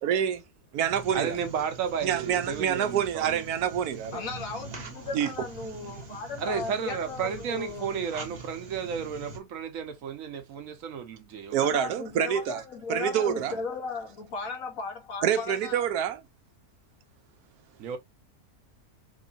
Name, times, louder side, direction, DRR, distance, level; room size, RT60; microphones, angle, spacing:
voice 1, 0.0-0.4 0.7-1.4 2.0-4.2 5.1-5.3 11.5-12.6 12.9-13.5 15.2-16.2, right 9 dB, 90° right, 1.2 m, -27 dB
sound 1, 0.8-9.4, right 3 dB, 35° right, 0.8 m, -44 dB
voice 2, 1.1-3.4 5.2-5.3 6.4-11.9 13.3-13.6 17.8-18.0, right 7 dB, 65° right, 1.0 m, -33 dB
voice 3, 4.1-7.9 11.6-15.9, left 4 dB, 65° left, 1.5 m, -36 dB
3.7 x 3.1 x 2.5 m
omnidirectional pair, 1.6 m